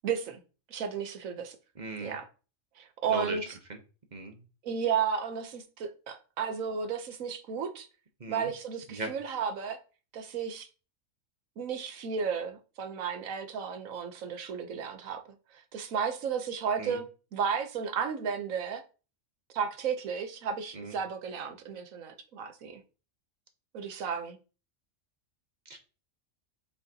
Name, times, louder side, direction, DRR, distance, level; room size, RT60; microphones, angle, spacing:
voice 1, 0.0-0.4 0.7-1.6 2.0-2.3 2.8-3.5 4.6-7.9 8.3-9.8 10.1-10.7 11.6-18.8 19.5-22.8 23.7-24.4, right 6 dB, 80° right, 1.3 m, -33 dB
voice 2, 1.8-2.2 3.1-3.4 3.7-3.8 4.1-4.4 8.2-8.5 8.9-9.1 16.8-17.0 20.7-20.9 25.7-25.8, right 3 dB, 35° right, 1.1 m, -38 dB
6.8 x 5.1 x 2.9 m
omnidirectional pair, 1.4 m